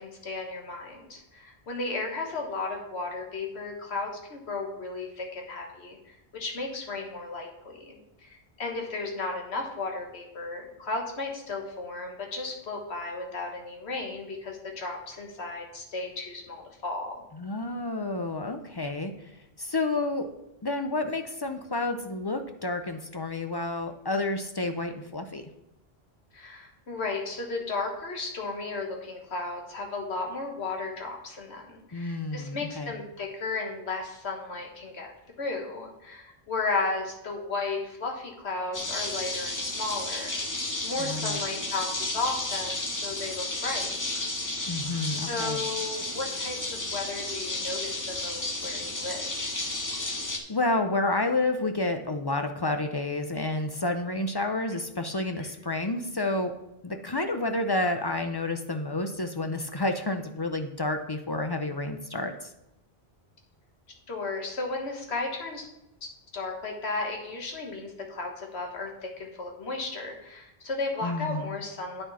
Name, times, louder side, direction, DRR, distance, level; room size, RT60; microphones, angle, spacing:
voice 1, 0.0-6.0 6.3-17.2 26.3-35.1 35.4-44.3 45.0-49.5 55.4-55.5 64.1-65.7 66.0-72.0, left 3 dB, 80° left, 1 dB, 1.6 m, -34 dB
voice 2, 17.3-19.3 19.6-20.3 20.6-25.5 31.9-32.9 41.0-41.4 44.7-45.6 50.0-50.1 50.5-56.5 56.8-62.5 71.0-71.5, left 2 dB, 35° left, 6 dB, 0.4 m, -30 dB
sound 1, 38.7-50.4, left 2 dB, 20° left, 0.8 m, -32 dB
8.9 x 6.1 x 4.1 m, 0.89 s
omnidirectional pair, 1.1 m